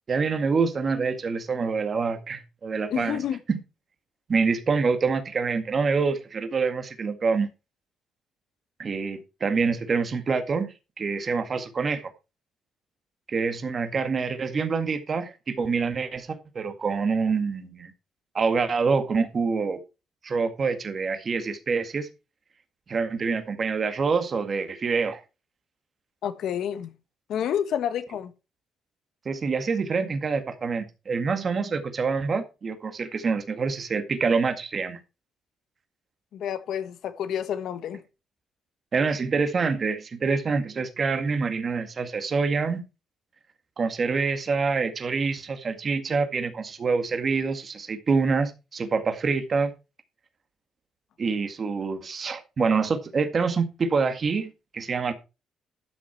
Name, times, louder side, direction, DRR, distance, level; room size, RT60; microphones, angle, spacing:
voice 1, 0.1-3.2 3.5-3.6 4.3-7.5 8.8-12.1 13.3-17.9 18.3-19.8 20.2-22.1 22.9-25.2 29.3-35.0 38.9-42.8 43.8-49.7 51.2-55.1, right 4 dB, 40° right, 1.9 m, -26 dB
voice 2, 2.9-3.4 26.2-26.9 27.3-28.3 36.3-38.0, left 9 dB, 75° left, 1.4 m, -29 dB
12.5 x 6.2 x 4.5 m
cardioid pair, 90°, 0 cm